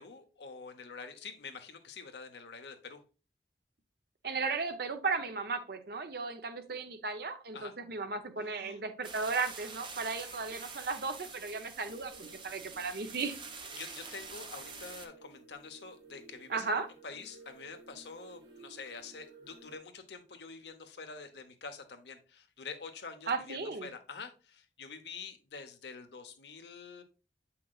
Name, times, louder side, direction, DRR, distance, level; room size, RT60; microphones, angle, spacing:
voice 1, 0.0-3.0 7.5-7.7 8.4-8.8 13.8-27.0, left 5 dB, 75° left, 7 dB, 0.9 m, -47 dB
voice 2, 4.2-13.4 16.5-16.9 23.3-23.9, right 4 dB, 60° right, 8 dB, 0.7 m, -35 dB
sound 1, 9.0-15.1, right 4 dB, 30° right, 0.8 m, -46 dB
sound 2, 11.8-19.8, right 3 dB, 85° right, 1.4 m, -56 dB
7.6 x 5.7 x 2.4 m, 0.33 s
head